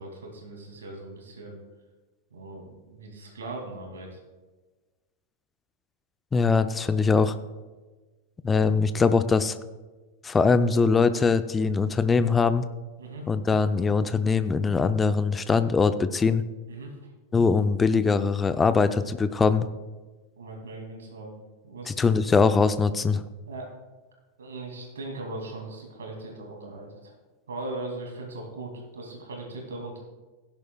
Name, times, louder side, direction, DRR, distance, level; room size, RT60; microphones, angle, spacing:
voice 1, 0.0-1.6 2.3-4.2 13.0-13.2 16.7-17.0 20.4-21.3 21.6-22.2 23.5-23.7 24.4-27.1 27.5-30.0, right 2 dB, 65° right, 1 dB, 2.4 m, -39 dB
voice 2, 6.3-7.4 8.4-9.6 10.2-12.7 13.3-16.4 17.3-19.7 21.9-23.2, left 4 dB, 15° left, 12 dB, 0.5 m, -22 dB
16.5 x 10.5 x 2.3 m, 1.3 s
figure-of-eight pair, 90°, 0 cm